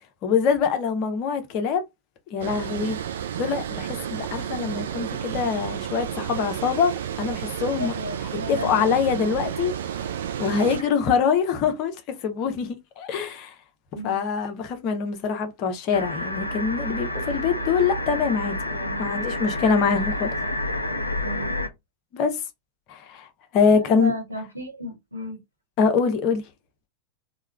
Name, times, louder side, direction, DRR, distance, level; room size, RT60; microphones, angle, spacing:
voice 1, 0.2-1.8 2.3-3.0 3.4-7.9 8.5-9.7 10.4-11.9 12.2-13.5 14.0-20.3 22.1-22.4 22.9-23.3 23.5-24.1 25.8-26.4, left 6 dB, 40° left, 0.8 m, -24 dB
Water, 2.4-10.8, right 9 dB, 60° right, 0.4 m, -31 dB
voice 2, 7.8-8.9 9.2-9.3 10.8-10.9 13.9-14.2 18.7-19.1 21.2-21.5 23.7-25.4, equal, 85° right, 1.2 m, -34 dB
sound 1, 15.9-21.7, left 1 dB, 85° left, 0.5 m, -29 dB
3.4 x 2.2 x 3.3 m
figure-of-eight pair, 90°, 0 cm